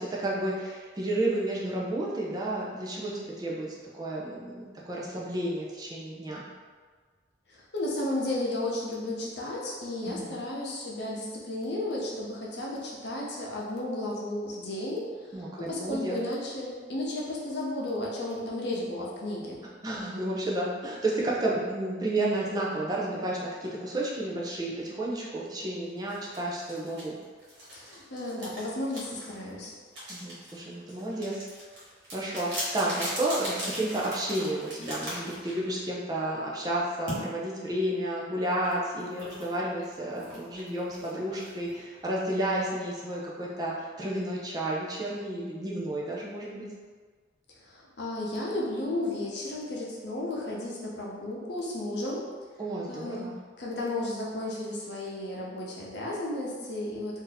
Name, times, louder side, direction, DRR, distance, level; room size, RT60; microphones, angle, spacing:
voice 1, 0.0-6.4 10.0-10.4 15.3-16.2 19.8-27.2 30.1-31.4 32.1-46.7 52.6-53.3, right 1 dB, 20° right, -5 dB, 0.5 m, -31 dB
voice 2, 7.5-15.4 15.7-19.6 27.8-29.7 47.6-52.3 52.9-53.3 53.6-57.2, left 1 dB, 65° left, -4 dB, 0.8 m, -33 dB
sound 1, 26.1-36.0 37.1-37.2 38.5-42.4, equal, 75° right, 1.4 m, -40 dB
2.8 x 2.6 x 3.9 m, 1.5 s
head